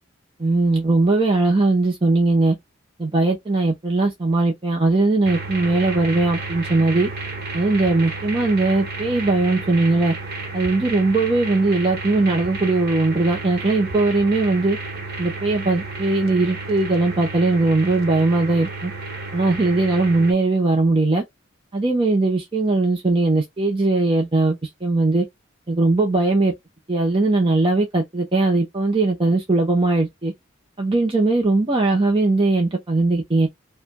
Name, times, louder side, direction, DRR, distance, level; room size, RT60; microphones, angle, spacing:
voice 1, 0.4-2.6 3.0-7.1 7.5-10.1 10.5-14.8 15.2-18.9 19.3-21.2 21.7-25.2 25.7-26.5 26.9-30.3 30.8-33.5, right 2 dB, 25° right, 0.8 m, -19 dB
sound 1, 5.2-20.3, right 3 dB, 50° right, 1.2 m, -32 dB
4.9 x 2.3 x 2.2 m
head